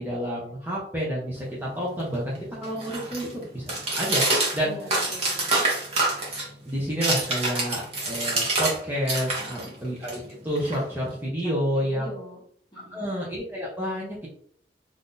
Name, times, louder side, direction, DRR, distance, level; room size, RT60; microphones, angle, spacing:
voice 1, 0.0-4.2 4.5-4.7 5.5-5.7 6.6-12.1 12.9-14.3, equal, 10° right, -6 dB, 0.7 m, -29 dB
sound 1, 1.4-8.8 9.0-11.2, right 2 dB, 35° right, 1.0 m, -28 dB
voice 2, 4.6-5.5 9.4-9.7 11.4-12.4 12.7-13.1, left 1 dB, 25° left, -3 dB, 1.2 m, -43 dB
2.6 x 2.5 x 3.7 m, 0.62 s
head